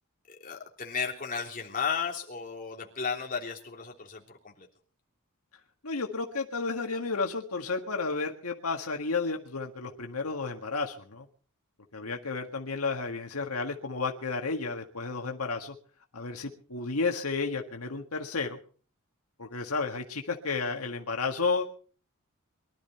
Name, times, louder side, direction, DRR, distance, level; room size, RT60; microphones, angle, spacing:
voice 1, 0.3-4.7, left 6 dB, 40° left, 0 dB, 3.3 m, -34 dB
voice 2, 5.8-11.3 11.9-15.8 16.1-18.6 19.4-21.6, left 4 dB, 85° left, 3 dB, 1.8 m, -32 dB
23.0 x 12.5 x 4.5 m, 0.42 s
head